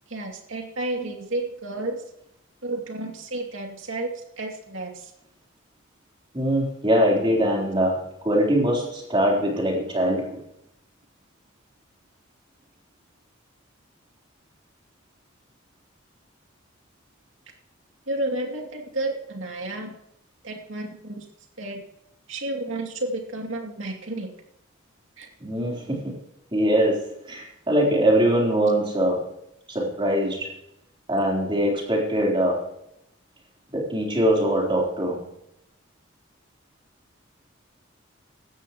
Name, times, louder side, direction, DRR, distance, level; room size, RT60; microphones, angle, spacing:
voice 1, 0.1-2.0 2.6-5.1 18.1-19.9 20.4-21.2 21.6-21.8 22.3-24.3 25.2-25.3, right 2 dB, 65° right, 1 dB, 2.7 m, -31 dB
voice 2, 6.3-10.4 25.4-26.1 26.5-29.3 29.7-30.5 31.1-32.7 33.7-35.2, equal, 25° right, -2 dB, 3.8 m, -22 dB
16.5 x 13.0 x 3.1 m, 0.78 s
head